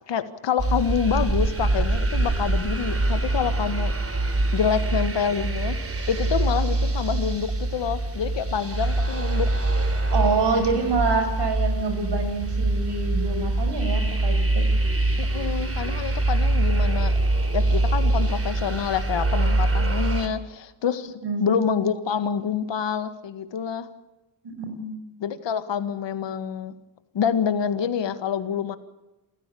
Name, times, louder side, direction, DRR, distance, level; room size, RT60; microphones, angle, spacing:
voice 1, 0.1-3.9 4.5-5.8 6.1-9.5 15.2-17.2 17.5-21.1 21.4-23.9 25.2-26.7 27.1-28.8, left 7 dB, 85° left, 11 dB, 1.8 m, -27 dB
sound 1, 0.6-20.3, right 2 dB, 30° right, 3.2 m, -24 dB
voice 2, 10.1-14.7 15.8-15.9 21.2-21.5 24.4-25.0, right 3 dB, 70° right, 7 dB, 5.9 m, -26 dB
28.5 x 15.5 x 8.6 m, 1.0 s
wide cardioid pair, 105°, 42 cm